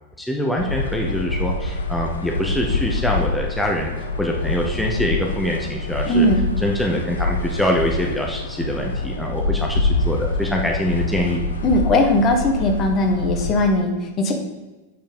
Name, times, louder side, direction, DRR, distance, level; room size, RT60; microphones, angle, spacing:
voice 1, 0.2-3.9 4.2-6.3 6.6-11.4, left 1 dB, 5° left, -1 dB, 0.9 m, -24 dB
sound 1, 0.6-13.6, left 3 dB, 70° left, 0.7 m, -26 dB
voice 2, 6.0-6.5 11.6-14.3, left 1 dB, 30° left, 3 dB, 1.2 m, -19 dB
7.8 x 4.4 x 5.3 m, 1.2 s
figure-of-eight pair, 90°, 0 cm